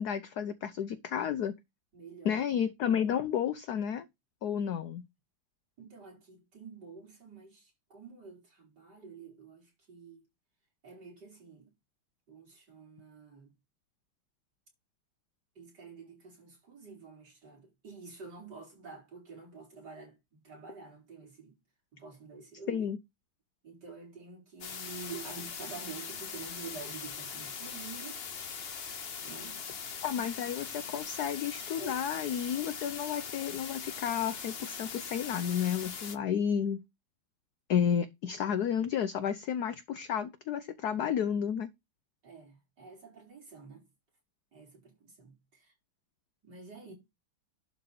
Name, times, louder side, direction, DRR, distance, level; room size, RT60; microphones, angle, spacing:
voice 1, 0.0-1.5 2.2-4.0 4.4-5.0 22.7-23.0 30.0-36.8 37.7-41.7, left 8 dB, 65° left, 1.1 m, -31 dB
voice 2, 1.9-2.4 5.8-10.3 10.8-11.7 12.3-13.5 15.6-21.6 21.9-22.9 23.6-28.2 29.2-29.6 31.8-32.0 42.2-43.9 44.5-45.7 46.4-46.9, right 4 dB, 55° right, 5.5 m, -48 dB
sound 1, 24.6-36.2, left 6 dB, 45° left, 0.8 m, -41 dB
11.5 x 4.3 x 5.4 m
omnidirectional pair, 2.2 m